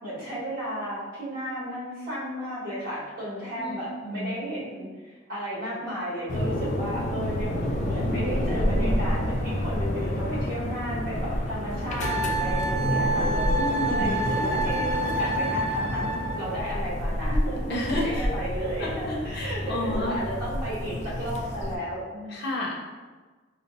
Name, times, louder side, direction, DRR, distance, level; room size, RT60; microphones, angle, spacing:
voice 1, 0.0-13.5 13.9-22.4, equal, 50° right, -8 dB, 1.5 m, -33 dB
sound 1, 6.3-21.8, left 1 dB, 40° left, 0.3 m, -29 dB
Wind instrument woodwind instrument, 12.0-16.5, right 2 dB, 35° right, 0.3 m, -28 dB
voice 2, 13.6-14.1 17.7-18.3 18.8-20.2 22.3-22.7, left 2 dB, 60° left, -3 dB, 0.7 m, -31 dB
4.8 x 2.0 x 2.7 m, 1.3 s
head